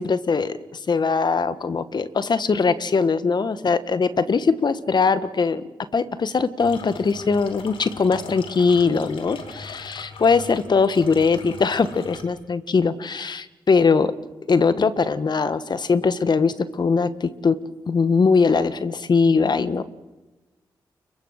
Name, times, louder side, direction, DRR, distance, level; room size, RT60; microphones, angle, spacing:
voice 1, 0.0-5.6 5.9-14.1 14.5-17.6 17.9-19.8, left 4 dB, 55° left, 13 dB, 1.7 m, -21 dB
sound 1, 6.6-12.2, left 4 dB, 80° left, 3.1 m, -40 dB
29.0 x 23.5 x 6.7 m, 1.1 s
supercardioid pair, 40°, 9 cm